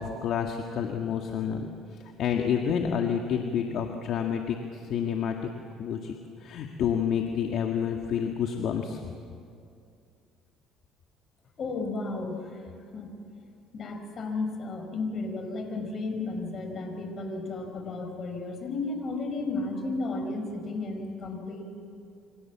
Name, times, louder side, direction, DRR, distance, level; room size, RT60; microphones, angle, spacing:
voice 1, 0.0-1.7 2.2-4.6 4.9-5.5 5.8-6.1 6.4-9.0, left 7 dB, 60° left, 3 dB, 1.9 m, -28 dB
voice 2, 11.6-12.6 12.9-13.1 13.7-21.6, left 3 dB, 45° left, 5 dB, 5.4 m, -33 dB
28.5 x 25.0 x 7.4 m, 2.4 s
cardioid pair, 110°, 0 cm